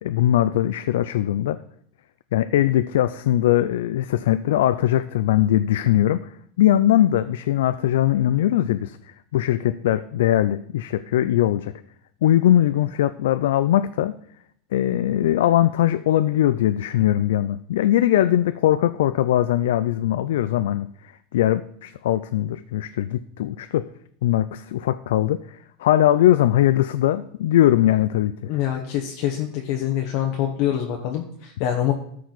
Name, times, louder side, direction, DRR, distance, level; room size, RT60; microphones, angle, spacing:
voice 1, 0.0-1.6 2.3-6.3 6.6-9.0 9.3-11.7 12.2-14.1 14.7-20.9 21.3-23.9 24.2-28.5, left 12 dB, 85° left, 12 dB, 0.3 m, -20 dB
voice 2, 28.5-31.9, left 11 dB, 55° left, 2 dB, 0.9 m, -25 dB
13.0 x 4.6 x 4.0 m, 0.68 s
supercardioid pair, 145°, 0 cm